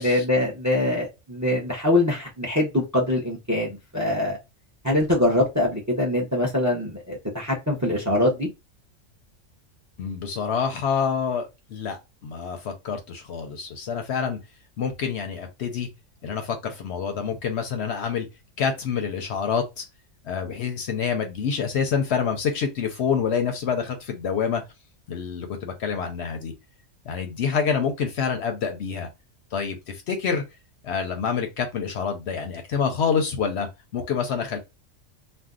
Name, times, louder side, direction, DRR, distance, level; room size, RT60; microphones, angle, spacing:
voice 1, 0.0-4.4 4.8-8.5, left 1 dB, 20° right, 0.5 m, -23 dB
voice 2, 10.0-14.4 14.8-15.9 16.2-18.3 18.6-19.8 20.2-24.6 25.1-26.5 27.1-29.1 29.5-30.4 30.8-34.6, left 6 dB, 65° left, 0.8 m, -27 dB
2.6 x 2.1 x 3.6 m
omnidirectional pair, 1.4 m